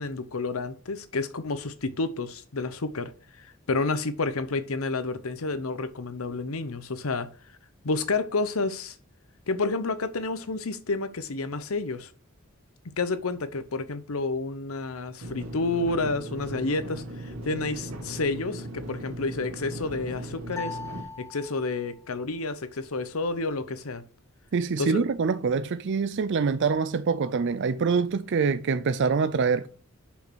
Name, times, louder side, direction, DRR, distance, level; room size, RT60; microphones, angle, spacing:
voice 1, 0.0-7.3 7.8-9.0 9.5-12.1 12.8-20.8 21.2-24.0 24.8-25.0, left 3 dB, 75° left, 0.9 m, -30 dB
sound 1, 15.2-21.0, right 1 dB, 85° right, 1.8 m, -38 dB
sound 2, 20.5-22.0, left 4 dB, 15° left, 1.5 m, -39 dB
voice 2, 24.5-29.7, right 5 dB, 55° right, 0.4 m, -25 dB
6.4 x 5.8 x 6.2 m
head